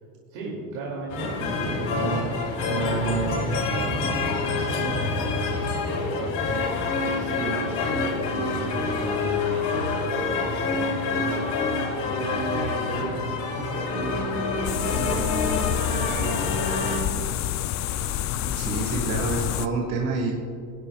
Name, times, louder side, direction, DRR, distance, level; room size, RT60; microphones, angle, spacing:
voice 1, 0.3-11.8 12.2-16.5, right 2 dB, 75° right, -3 dB, 2.5 m, -36 dB
sound 1, 1.1-17.0, left 3 dB, 70° left, 2.9 m, -27 dB
sound 2, 14.6-19.7, left 11 dB, 45° left, 0.4 m, -28 dB
voice 2, 18.4-20.3, right 4 dB, 55° right, -1 dB, 1.7 m, -28 dB
18.0 x 10.5 x 2.3 m, 2.5 s
supercardioid pair, 110°, 43 cm